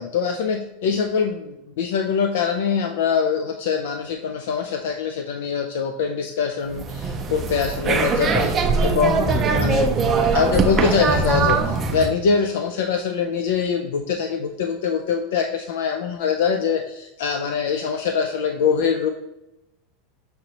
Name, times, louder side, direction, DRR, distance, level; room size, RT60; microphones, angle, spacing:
voice 1, 0.0-19.1, left 6 dB, 80° left, 5 dB, 0.3 m, -23 dB
sound 1, 6.7-12.1, right 4 dB, 20° right, 0.4 m, -21 dB
6.3 x 3.0 x 2.8 m, 0.92 s
supercardioid pair, 155°, 0 cm